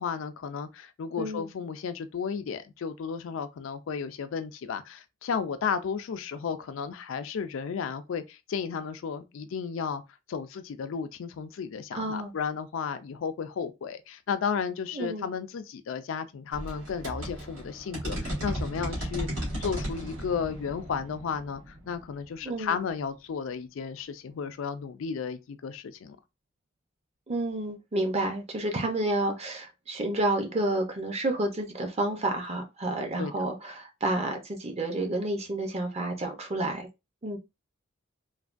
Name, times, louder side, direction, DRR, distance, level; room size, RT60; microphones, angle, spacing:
voice 1, 0.0-10.0 10.3-26.2 33.2-33.3, left 6 dB, 80° left, 0.4 m, -33 dB
voice 2, 1.2-1.5 11.9-12.3 14.9-15.3 22.4-22.8 27.3-36.9 37.2-37.4, right 2 dB, 30° right, 0.6 m, -30 dB
sound 1, 16.5-23.0, equal, 80° right, 1.6 m, -36 dB
3.2 x 2.2 x 2.5 m
head